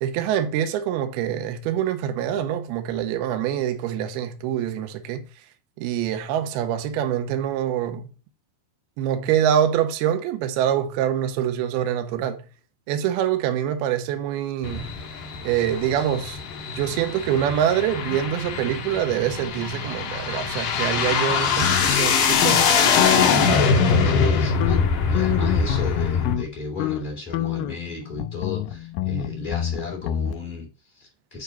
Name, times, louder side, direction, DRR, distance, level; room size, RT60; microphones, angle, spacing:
voice 1, 0.0-5.2 5.8-8.1 9.0-12.4 12.9-14.9 15.4-16.4 16.7-23.4, right 10 dB, 80° right, 2.6 m, -25 dB
sound 1, 14.6-26.3, left 5 dB, 60° left, 2.8 m, -23 dB
sound 2, 21.6-23.5 23.7-24.3 24.6-26.5 26.8-27.0 27.3-30.3, left 12 dB, 85° left, 2.0 m, -27 dB
voice 2, 24.0-31.4, left 4 dB, 15° left, 2.1 m, -34 dB
9.5 x 3.7 x 5.2 m
omnidirectional pair, 4.8 m